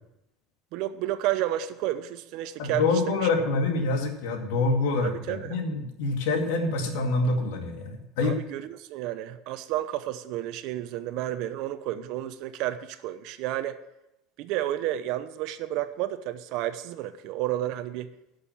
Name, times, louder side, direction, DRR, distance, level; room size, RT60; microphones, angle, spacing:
voice 1, 0.7-2.8 5.0-5.5 8.2-13.8 14.4-18.1, right 13 dB, 60° right, 12 dB, 0.8 m, -31 dB
voice 2, 2.6-8.4, left 3 dB, 85° left, 4 dB, 2.1 m, -26 dB
11.5 x 6.5 x 7.2 m, 0.88 s
cardioid pair, 150°, 0 cm